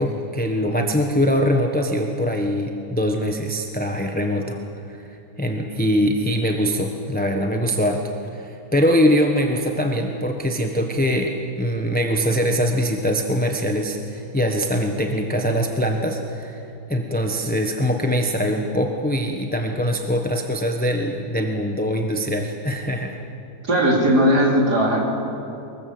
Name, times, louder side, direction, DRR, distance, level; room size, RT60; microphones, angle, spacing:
voice 1, 0.0-4.6 4.9-5.0 5.4-8.0 8.3-23.2, equal, 5° left, 2 dB, 1.1 m, -22 dB
voice 2, 23.7-25.1, equal, 90° right, -2 dB, 4.5 m, -18 dB
24.0 x 21.5 x 7.9 m, 2.8 s
omnidirectional pair, 1.7 m